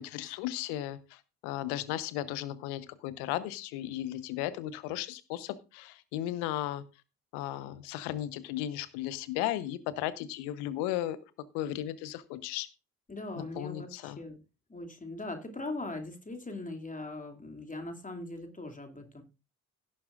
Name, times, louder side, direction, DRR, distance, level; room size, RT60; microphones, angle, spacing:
voice 1, 0.0-6.8 7.3-11.2 11.5-12.7 13.4-14.2, left 13 dB, 65° left, 16 dB, 1.0 m, -35 dB
voice 2, 13.1-14.4 14.7-19.2, left 2 dB, 20° left, 4 dB, 2.5 m, -40 dB
17.0 x 7.7 x 2.5 m, 0.29 s
figure-of-eight pair, 45°, 42 cm